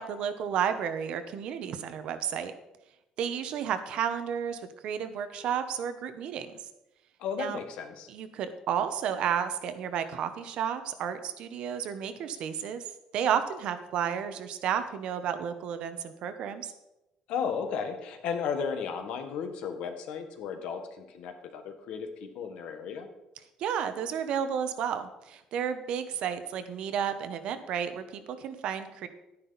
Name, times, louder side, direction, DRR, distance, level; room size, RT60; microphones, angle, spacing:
voice 1, 0.0-2.5 3.2-6.5 7.4-7.6 8.1-12.8 13.1-16.7 23.6-29.1, right 8 dB, 55° right, 10 dB, 0.9 m, -32 dB
voice 2, 7.2-8.1 17.3-23.1, left 6 dB, 65° left, 7 dB, 1.4 m, -34 dB
11.0 x 10.0 x 4.1 m, 0.94 s
cardioid pair, 180°, 2 cm